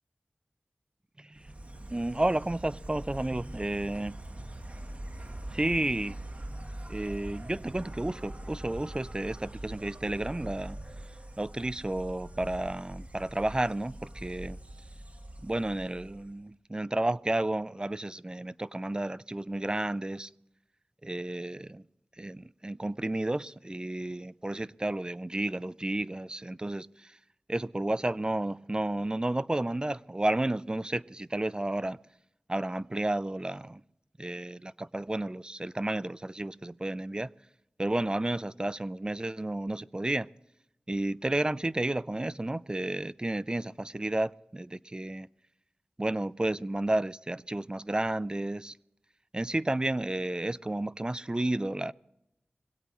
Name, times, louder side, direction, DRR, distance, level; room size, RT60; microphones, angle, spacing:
voice 1, 1.2-1.6 1.9-4.1 5.5-6.2 6.9-10.8 11.4-14.6 15.4-20.3 21.0-21.9 22.2-27.2 27.5-32.0 32.5-33.8 34.2-37.3 37.8-40.3 40.9-45.3 46.0-48.7 49.3-51.9, right 1 dB, 25° right, 0.4 m, -32 dB
Insect, 1.4-16.4, right 1 dB, 40° right, 1.3 m, -43 dB
22.0 x 17.0 x 3.1 m
wide cardioid pair, 60°, 4 cm